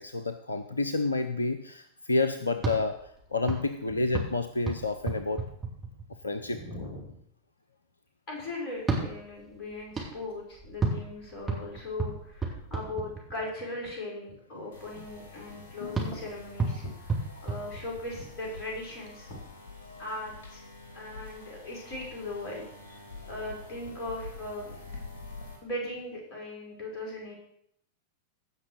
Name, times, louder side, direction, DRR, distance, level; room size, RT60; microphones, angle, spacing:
voice 1, 0.0-5.4 6.2-6.6 14.6-14.7 15.8-16.1 17.3-17.5 19.8-20.1, left 3 dB, 75° left, 10 dB, 0.6 m, -30 dB
sound 1, 2.5-6.4 8.7-13.6 15.9-18.4, right 3 dB, 15° right, 3.7 m, -34 dB
voice 2, 3.9-4.2 6.4-7.2 8.3-19.4 20.0-20.6 20.9-22.6 23.3-24.8 25.6-27.4, left 2 dB, 35° left, -2 dB, 5.8 m, -39 dB
sound 2, 14.7-25.6, left 3 dB, 55° left, 3.5 m, -46 dB
16.5 x 6.2 x 6.7 m, 0.72 s
figure-of-eight pair, 90°, 0 cm